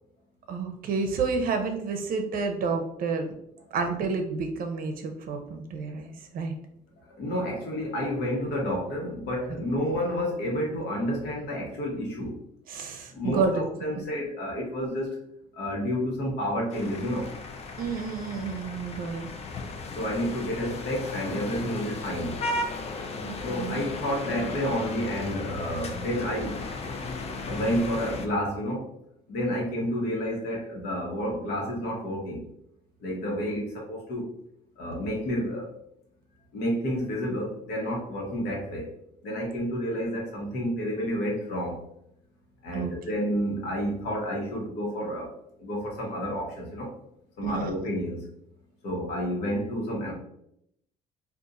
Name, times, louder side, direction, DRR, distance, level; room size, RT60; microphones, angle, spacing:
voice 1, 0.5-3.3 3.7-6.5 12.7-14.0 17.8-19.3 23.2-23.8 42.7-42.9 47.4-47.8, right 4 dB, 55° right, 5 dB, 0.6 m, -30 dB
voice 2, 7.2-12.4 13.1-15.2 15.6-17.3 19.9-22.4 23.4-26.6 27.5-28.9 29.3-32.4 33.0-34.3 34.8-35.7 36.5-38.9 39.2-41.8 42.6-45.3 45.6-46.9 47.4-48.3 48.8-50.1, equal, 75° left, -1 dB, 1.2 m, -30 dB
sound 1, 16.7-28.3, left 3 dB, 40° left, 0.5 m, -35 dB
2.5 x 2.4 x 4.0 m, 0.75 s
cardioid pair, 110°, 17 cm